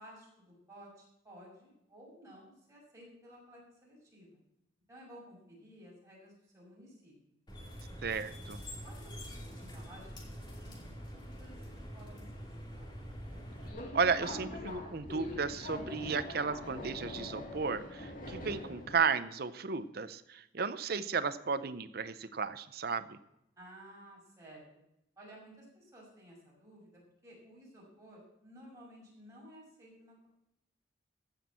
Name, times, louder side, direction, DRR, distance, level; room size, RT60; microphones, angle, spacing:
voice 1, 0.0-4.4 4.9-7.4 8.8-12.9 23.6-24.6 25.2-30.3, equal, 20° right, -4 dB, 6.0 m, -55 dB
sound 1, 7.5-13.7, equal, 25° left, 2.6 m, -46 dB
voice 2, 8.0-8.6 13.9-23.2, right 5 dB, 55° right, 12 dB, 0.7 m, -34 dB
Subway metro underground, 13.3-18.9, left 2 dB, 45° left, 2.4 m, -43 dB
15.0 x 6.2 x 7.5 m, 0.81 s
head